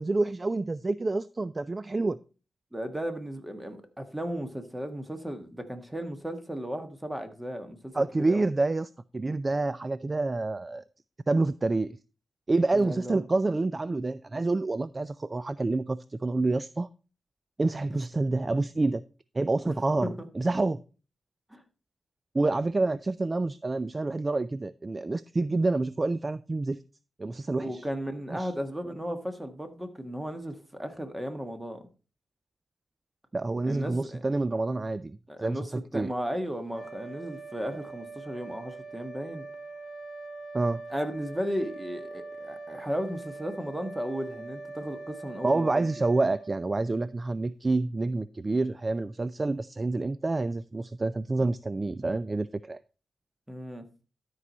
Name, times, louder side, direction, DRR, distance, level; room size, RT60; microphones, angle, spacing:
voice 1, 0.0-2.2 7.9-10.8 11.3-12.0 12.5-16.9 17.6-19.0 19.3-20.8 22.3-26.8 27.2-27.8 28.3-28.5 33.3-36.1 40.5-40.8 45.4-52.8, right 2 dB, 30° right, 16 dB, 0.3 m, -28 dB
voice 2, 2.7-8.4 12.7-13.2 19.6-19.7 20.0-20.3 21.5-21.6 27.6-31.8 33.6-34.2 35.3-35.6 35.9-39.4 40.9-45.9 53.5-53.8, equal, 10° right, 7 dB, 1.5 m, -35 dB
sound 1, 36.6-47.3, right 3 dB, 5° left, 2.8 m, -43 dB
12.5 x 4.7 x 4.1 m, 0.35 s
cardioid pair, 70°, 0 cm